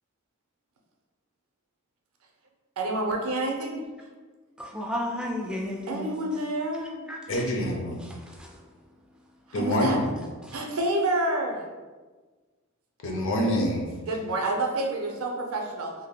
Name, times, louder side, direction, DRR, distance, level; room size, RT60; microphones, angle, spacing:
voice 1, 2.8-3.8 5.9-7.1 9.6-10.0 10.5-11.6 14.1-15.9, right 2 dB, 85° right, 1 dB, 0.5 m, -28 dB
voice 2, 4.6-6.4 7.1-7.4 8.0-8.7 10.4-10.6, left 1 dB, 5° right, -1 dB, 0.4 m, -34 dB
voice 3, 7.3-8.0 9.5-10.1 13.0-13.9, equal, 65° left, 0 dB, 0.6 m, -26 dB
3.4 x 2.6 x 2.2 m, 1.3 s
head